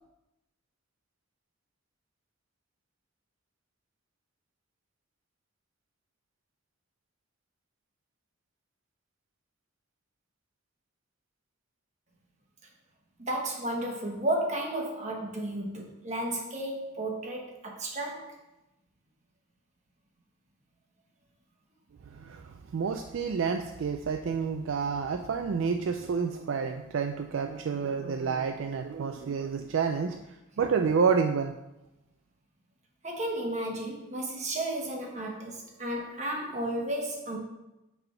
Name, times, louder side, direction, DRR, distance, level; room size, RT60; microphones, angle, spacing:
voice 1, 13.2-18.3 33.0-37.4, right 1 dB, 35° right, 0 dB, 1.2 m, -33 dB
voice 2, 22.1-30.2 30.6-31.5, right 5 dB, 60° right, 5 dB, 0.3 m, -29 dB
5.9 x 3.5 x 5.6 m, 0.93 s
head